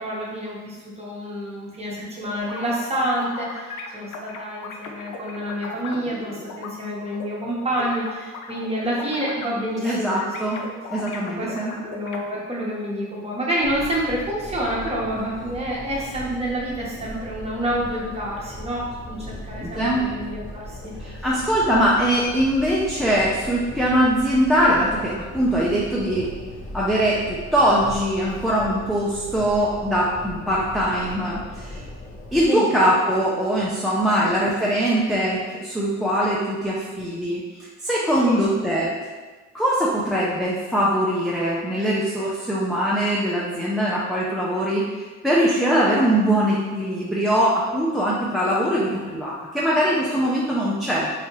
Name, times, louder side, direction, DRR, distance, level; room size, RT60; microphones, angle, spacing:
voice 1, 0.0-10.5 11.4-11.5 11.8-20.9 32.5-32.7 34.1-34.2 38.2-38.4, right 1 dB, 20° right, -5 dB, 1.0 m, -28 dB
sound 1, 2.4-6.7 7.1-12.2, left 4 dB, 90° left, 0.5 m, -36 dB
voice 2, 9.8-11.7 19.6-20.1 21.0-26.4 26.7-31.8 32.3-38.9 39.5-44.9 45.2-51.1, equal, ahead, -6 dB, 0.5 m, -22 dB
sound 2, 13.6-32.4, left 1 dB, 25° left, 0.8 m, -38 dB
3.2 x 2.8 x 2.9 m, 1.3 s
cardioid pair, 90°, 30 cm